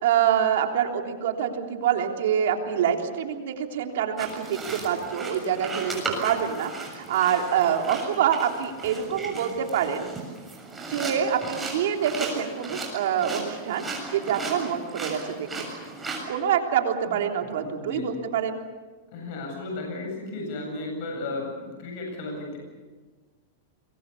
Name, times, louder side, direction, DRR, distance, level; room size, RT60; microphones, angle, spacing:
voice 1, 0.0-10.1 10.9-13.8 14.1-15.7 16.3-18.6, right 9 dB, 75° right, 3 dB, 3.4 m, -26 dB
sound 1, 4.2-16.2, right 3 dB, 10° right, 7.2 m, -36 dB
voice 2, 17.5-18.2 19.1-22.6, left 2 dB, 60° left, 0 dB, 7.9 m, -34 dB
27.0 x 22.0 x 7.0 m, 1.4 s
hypercardioid pair, 130°, 0 cm